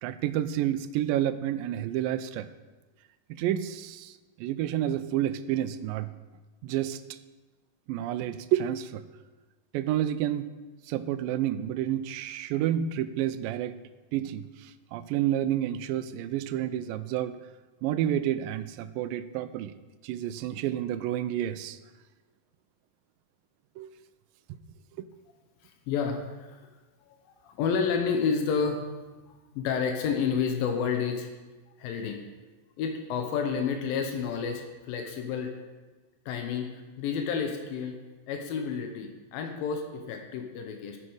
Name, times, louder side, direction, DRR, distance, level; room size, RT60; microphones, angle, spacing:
voice 1, 0.0-2.5 3.3-6.1 6.6-7.0 7.9-9.0 9.7-10.5 10.9-13.8 14.1-17.4 17.8-19.7 20.0-21.8 23.8-23.9, right 11 dB, 85° right, 13 dB, 2.2 m, -29 dB
voice 2, 25.6-26.6 27.0-28.8 29.6-31.3 31.8-32.2 32.8-35.5 36.3-38.0 38.3-41.0, left 6 dB, 90° left, 4 dB, 2.6 m, -30 dB
13.5 x 6.1 x 4.8 m, 1.2 s
omnidirectional pair, 4.0 m